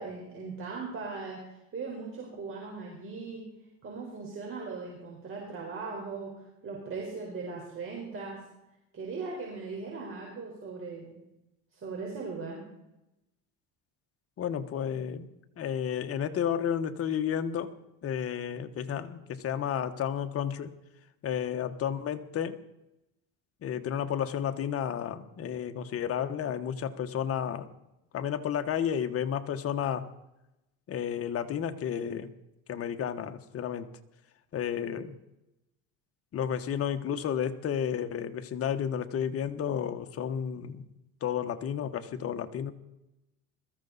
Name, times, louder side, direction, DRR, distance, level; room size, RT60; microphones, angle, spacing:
voice 1, 0.0-3.4 3.8-6.3 6.6-8.4 8.9-11.2 11.7-12.6, right 4 dB, 35° right, -2 dB, 4.5 m, -39 dB
voice 2, 14.4-15.3 15.6-20.7 21.2-22.6 23.6-27.7 28.1-30.1 30.9-32.3 32.7-33.9 34.5-35.2 36.3-40.9 41.2-42.7, left 8 dB, 40° left, 8 dB, 1.3 m, -32 dB
22.0 x 14.0 x 4.1 m, 0.93 s
supercardioid pair, 110°, 35 cm